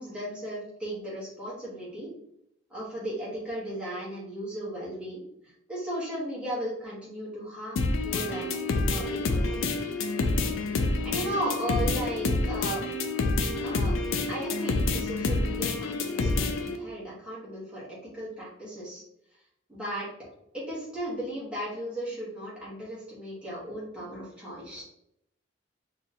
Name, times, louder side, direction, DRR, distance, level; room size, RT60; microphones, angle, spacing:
voice 1, 0.0-2.1 2.7-8.6 8.9-9.6 11.0-12.8 13.6-14.0 14.3-19.0 19.7-20.1 20.5-24.8, right 1 dB, 5° right, -8 dB, 1.4 m, -36 dB
sound 1, 7.8-16.8, left 3 dB, 80° left, 0.4 m, -28 dB
4.0 x 2.9 x 2.5 m, 0.77 s
head